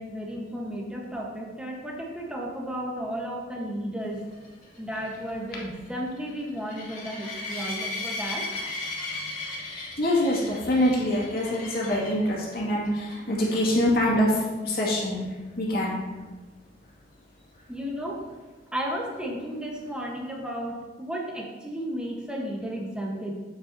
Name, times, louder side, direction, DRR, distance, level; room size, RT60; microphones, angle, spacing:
voice 1, 0.0-4.2 4.8-8.4 13.2-13.8 17.7-18.2 18.7-23.3, equal, 5° right, -2 dB, 1.2 m, -33 dB
sound 1, 4.3-12.3 12.8-13.1 13.4-13.5 13.9-14.0 17.6-17.7, left 2 dB, 40° left, 2.3 m, -36 dB
voice 2, 10.0-14.3 14.6-15.3 15.6-16.0, left 1 dB, 60° left, -5 dB, 2.2 m, -24 dB
8.0 x 7.8 x 2.8 m, 1.3 s
head